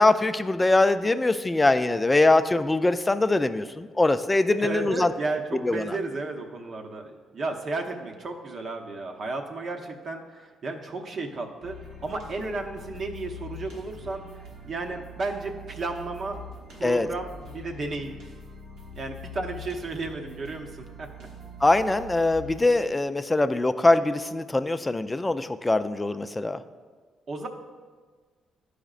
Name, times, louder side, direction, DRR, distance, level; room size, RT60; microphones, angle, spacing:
voice 1, 0.0-5.1 5.6-6.0 16.8-17.1 21.6-26.6, left 2 dB, 15° left, 11 dB, 0.3 m, -22 dB
voice 2, 4.6-14.3 14.6-18.2 18.9-21.3 27.3-27.5, right 3 dB, 50° right, 3 dB, 0.8 m, -33 dB
sound 1, 11.6-22.9, left 1 dB, 85° right, 1.2 m, -43 dB
11.5 x 5.0 x 2.4 m, 1.5 s
cardioid pair, 90°, 0 cm